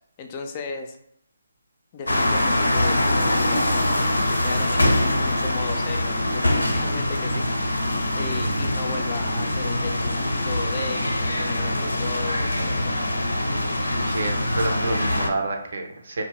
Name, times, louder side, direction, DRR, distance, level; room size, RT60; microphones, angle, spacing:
voice 1, 0.2-1.0 1.9-4.1 4.4-7.8 8.2-13.1, left 5 dB, 30° left, 4 dB, 0.3 m, -36 dB
sound 1, 2.1-15.3, left 1 dB, 90° left, 0.5 m, -23 dB
voice 2, 14.0-16.2, right 2 dB, 55° right, 3 dB, 0.6 m, -29 dB
2.8 x 2.1 x 3.0 m, 0.74 s
figure-of-eight pair, 150°, 0 cm